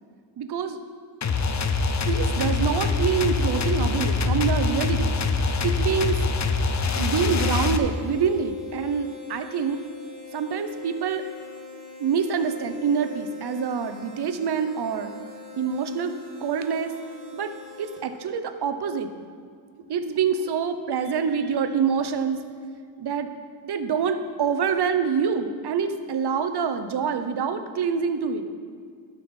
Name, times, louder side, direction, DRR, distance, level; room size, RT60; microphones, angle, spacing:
voice 1, 0.4-0.8 2.1-5.1 5.6-6.2 7.0-9.8 10.3-11.2 12.0-15.1 15.6-16.1 16.4-16.9 17.3-17.5 17.8-19.1 19.9-22.4 23.0-23.3 23.6-28.5, right 6 dB, 60° right, 8 dB, 0.9 m, -26 dB
sound 1, 1.2-7.8, left 4 dB, 40° left, 0.7 m, -24 dB
sound 2, 6.9-18.3, left 4 dB, 40° right, 2.1 m, -43 dB
12.5 x 5.8 x 4.4 m, 2.1 s
cardioid pair, 75°, 44 cm